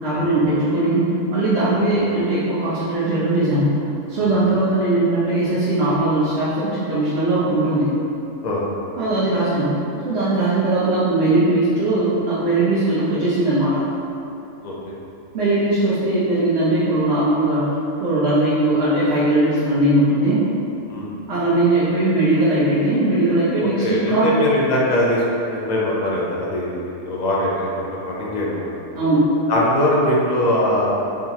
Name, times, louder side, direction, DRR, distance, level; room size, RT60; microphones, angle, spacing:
voice 1, 0.0-3.8 4.1-7.9 9.0-9.7 10.0-13.8 15.3-20.4 21.3-24.3 28.9-29.4, right 2 dB, 60° right, -11 dB, 1.1 m, -19 dB
voice 2, 14.6-14.9 20.9-21.1 23.8-28.8 29.5-30.9, left 1 dB, 45° left, -4 dB, 0.6 m, -21 dB
4.4 x 3.6 x 2.7 m, 2.8 s
omnidirectional pair, 1.3 m